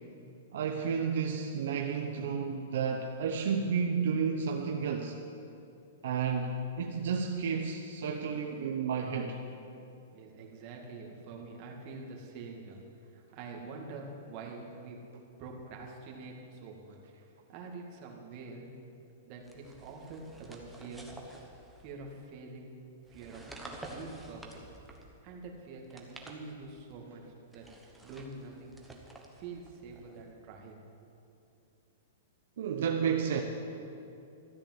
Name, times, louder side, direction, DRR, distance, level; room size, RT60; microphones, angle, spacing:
voice 1, 0.5-5.2 6.0-9.4 32.6-33.4, right 6 dB, 65° right, 3 dB, 0.9 m, -31 dB
voice 2, 10.1-15.0 15.4-17.0 17.5-18.7 19.3-21.1 21.8-22.8 23.1-24.6 25.2-27.2 27.5-27.7 28.0-28.8 29.4-30.8, right 3 dB, 35° right, -1 dB, 2.1 m, -46 dB
sound 1, 19.4-22.2 23.0-25.2 25.8-26.9 27.5-30.3, right 2 dB, 5° right, 1.1 m, -50 dB
13.5 x 8.8 x 7.5 m, 2.7 s
hypercardioid pair, 160°, 0 cm